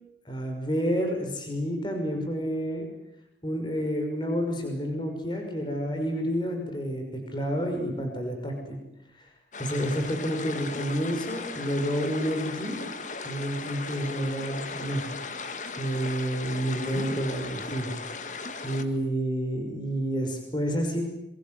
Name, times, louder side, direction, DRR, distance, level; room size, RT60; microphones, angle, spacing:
voice 1, 0.3-2.9 3.4-8.8 9.2-9.3 9.6-12.8 13.2-15.0 15.8-17.9 18.6-21.0, equal, 25° left, 3 dB, 5.9 m, -29 dB
sound 1, 9.5-18.9, left 4 dB, 40° left, 1.9 m, -37 dB
27.0 x 24.0 x 7.9 m, 0.88 s
head